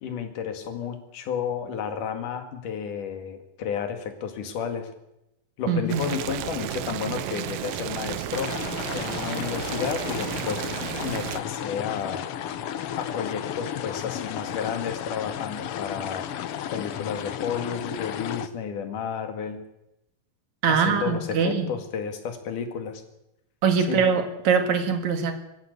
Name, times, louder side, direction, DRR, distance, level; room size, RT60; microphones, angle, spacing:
voice 1, 0.0-4.9 5.6-8.6 8.9-10.6 11.0-12.3 12.5-12.7 13.0-16.3 16.7-19.6 20.7-23.0 23.8-24.0, left 7 dB, 70° left, 7 dB, 3.6 m, -32 dB
voice 2, 5.7-6.1 20.6-21.7 23.6-25.4, right 6 dB, 60° right, 7 dB, 3.2 m, -23 dB
Boiling, 5.9-11.4, right 12 dB, 85° right, 2.7 m, -32 dB
sound 1, 8.3-18.5, left 10 dB, 85° left, 1.2 m, -34 dB
20.5 x 15.5 x 8.3 m, 0.88 s
omnidirectional pair, 3.9 m